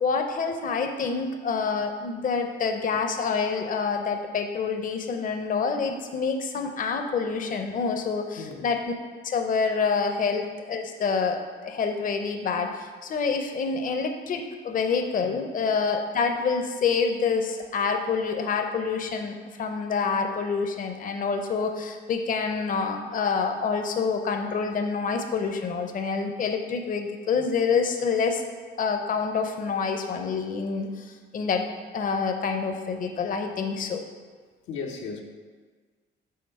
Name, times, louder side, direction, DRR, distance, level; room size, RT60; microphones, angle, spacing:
voice 1, 0.0-8.8 9.2-28.4 28.8-31.1 31.3-31.6 31.9-34.0, left 5 dB, 45° left, 5 dB, 0.6 m, -27 dB
voice 2, 8.4-8.7 15.2-15.3 34.7-35.2, left 5 dB, 85° left, 2 dB, 0.7 m, -35 dB
5.7 x 3.8 x 5.3 m, 1.5 s
cardioid pair, 90°, 20 cm